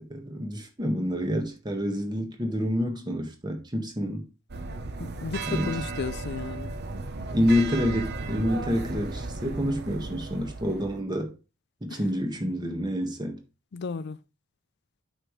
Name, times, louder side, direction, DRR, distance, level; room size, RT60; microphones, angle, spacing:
voice 1, 0.1-4.3 5.5-5.8 7.3-11.3 11.8-13.4, equal, 20° right, 1.5 m, -28 dB
sound 1, 4.5-11.0, right 3 dB, 55° right, 0.9 m, -35 dB
voice 2, 5.0-6.7 11.9-12.0 13.7-14.2, left 5 dB, 55° left, 0.4 m, -34 dB
8.9 x 6.6 x 3.2 m
head